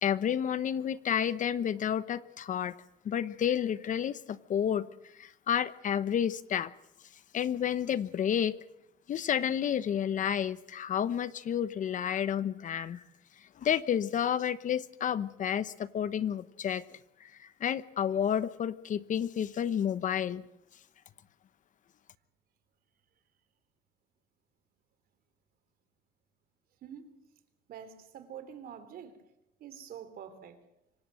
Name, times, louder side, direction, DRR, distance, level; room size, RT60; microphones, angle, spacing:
voice 1, 0.0-2.7 3.0-4.9 5.2-6.7 7.3-8.5 9.1-13.0 13.6-16.8 17.2-20.4, left 9 dB, 50° left, 15 dB, 1.0 m, -30 dB
voice 2, 26.8-27.1 27.7-29.1 29.6-30.6, right 8 dB, 65° right, 11 dB, 3.4 m, -46 dB
25.5 x 16.0 x 7.8 m, 0.86 s
cardioid pair, 110°, 17 cm